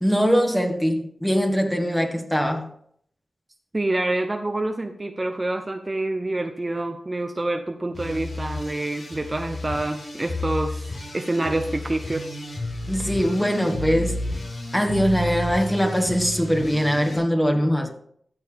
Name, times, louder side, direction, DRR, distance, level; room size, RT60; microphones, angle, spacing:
voice 1, 0.0-2.7 12.9-14.2 14.7-17.9, equal, 10° left, 4 dB, 1.7 m, -22 dB
voice 2, 3.7-12.3, right 2 dB, 30° right, 6 dB, 0.7 m, -27 dB
sound 1, 7.9-17.2, left 1 dB, 70° left, 4.4 m, -32 dB
14.0 x 6.8 x 3.5 m, 0.66 s
cardioid pair, 50°, 0 cm